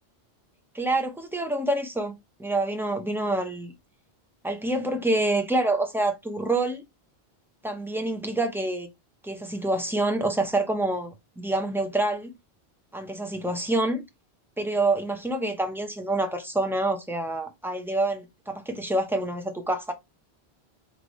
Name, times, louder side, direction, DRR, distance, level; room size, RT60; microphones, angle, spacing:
voice 1, 0.7-3.7 4.4-6.8 7.6-8.9 9.2-12.3 12.9-14.0 14.6-19.9, right 2 dB, 5° right, 0.7 m, -27 dB
3.3 x 3.3 x 4.1 m
omnidirectional pair, 1.1 m